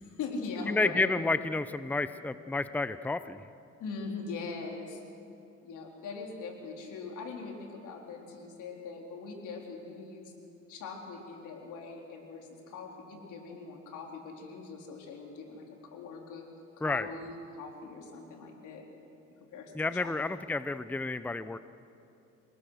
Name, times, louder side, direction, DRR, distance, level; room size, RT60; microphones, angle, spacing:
voice 1, 0.0-1.1 3.8-5.0 5.6-10.3 10.7-15.7 15.9-16.5 16.8-18.8 19.5-19.7 20.0-20.4, left 4 dB, 85° left, 0 dB, 3.9 m, -41 dB
voice 2, 0.7-3.4 16.8-17.1 19.7-21.6, left 3 dB, 5° left, 12 dB, 0.6 m, -30 dB
28.0 x 19.0 x 6.5 m, 2.7 s
cardioid pair, 90°, 30 cm